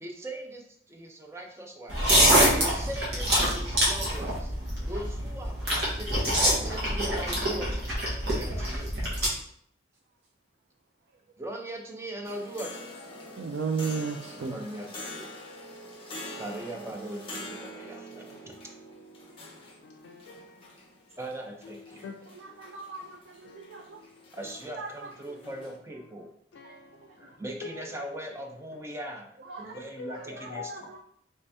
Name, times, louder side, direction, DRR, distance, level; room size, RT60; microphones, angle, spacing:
voice 1, 0.0-2.0 2.6-4.5 4.8-8.9 11.4-12.7 14.5-15.3 16.3-18.5 21.2-22.2 24.3-26.3 27.2-29.3 29.6-30.9, right 1 dB, 15° right, 0.5 m, -40 dB
sound 1, 1.9-9.3, equal, 65° right, 1.2 m, -25 dB
sound 2, 12.2-25.7, left 1 dB, 30° left, 0.6 m, -45 dB
voice 2, 13.4-14.6 22.3-23.2 23.5-24.0 24.8-24.9 26.6-26.7 29.5-29.7 30.7-31.0, right 5 dB, 80° right, 0.4 m, -34 dB
voice 3, 19.8-20.6 22.0-22.2 23.4-23.8 26.5-27.0 27.6-27.7 29.7-31.0, left 5 dB, 80° left, 0.3 m, -43 dB
3.2 x 2.7 x 3.3 m
head